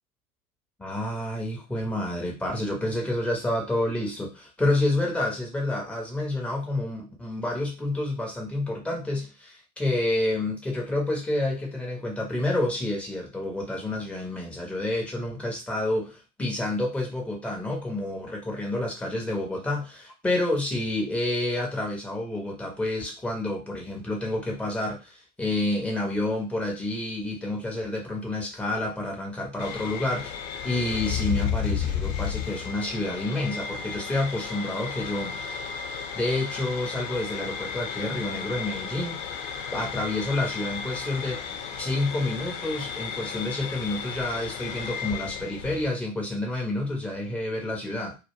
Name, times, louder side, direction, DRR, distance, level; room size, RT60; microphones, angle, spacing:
voice 1, 0.8-30.4 30.6-35.7 36.1-39.5 39.7-41.4 41.8-48.2, left 1 dB, 5° left, -1 dB, 0.4 m, -29 dB
sound 1, 29.6-45.9, left 7 dB, 55° left, 0.7 m, -33 dB
2.1 x 2.1 x 3.0 m, 0.29 s
figure-of-eight pair, 90°, 43 cm